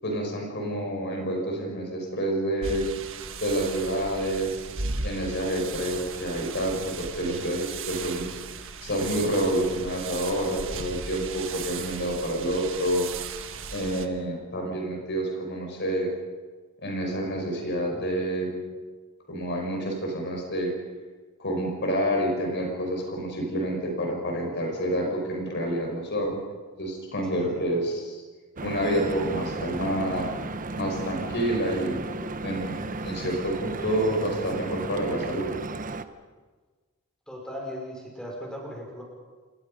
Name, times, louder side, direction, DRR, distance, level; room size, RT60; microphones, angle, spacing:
voice 1, 0.0-2.9 3.4-4.6 5.0-8.3 8.8-13.1 13.7-16.1 16.8-18.6 19.3-20.7 21.4-26.4 26.8-28.2 28.6-30.3 30.8-32.0 32.4-32.8 33.0-35.5, right 1 dB, 55° left, 1 dB, 5.3 m, -28 dB
sound 1, 2.6-14.1, right 5 dB, 65° right, 1.5 m, -37 dB
voice 2, 27.3-27.6 37.3-39.0, equal, 5° left, -1 dB, 5.7 m, -38 dB
Stream / Boat Water vehicle, 28.6-36.0, right 2 dB, 40° right, 1.0 m, -34 dB
28.5 x 20.5 x 5.4 m, 1.4 s
head